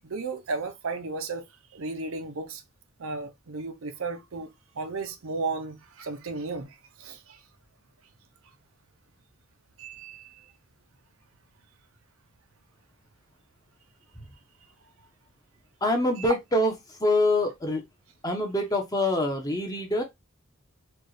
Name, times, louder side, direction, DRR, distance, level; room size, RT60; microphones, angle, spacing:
voice 1, 0.0-1.5 1.7-2.6 3.0-4.5 4.8-7.4 9.8-10.5 16.2-16.3, right 3 dB, 70° right, 0.6 m, -34 dB
voice 2, 15.8-16.7 17.0-17.8 18.2-20.0, left 1 dB, 20° left, 0.9 m, -25 dB
4.4 x 2.4 x 3.1 m
head